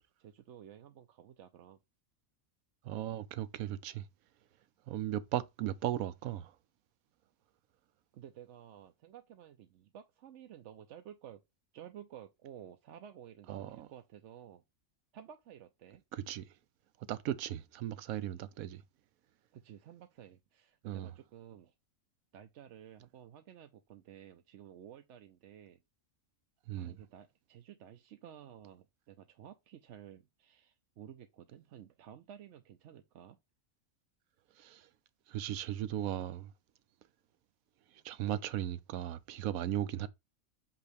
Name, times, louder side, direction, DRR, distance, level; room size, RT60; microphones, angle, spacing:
voice 1, 0.2-1.8 8.1-11.4 11.7-14.6 15.1-16.0 19.5-21.7 22.3-25.8 26.7-33.4, right 10 dB, 65° right, 0.9 m, -53 dB
voice 2, 2.8-4.0 4.9-6.5 13.5-13.9 16.1-16.5 17.1-18.8 20.8-21.1 26.7-27.0 34.6-34.9 35.3-36.5 38.0-40.1, right 12 dB, 90° right, 1.1 m, -37 dB
8.1 x 2.8 x 5.0 m
omnidirectional pair, 1.4 m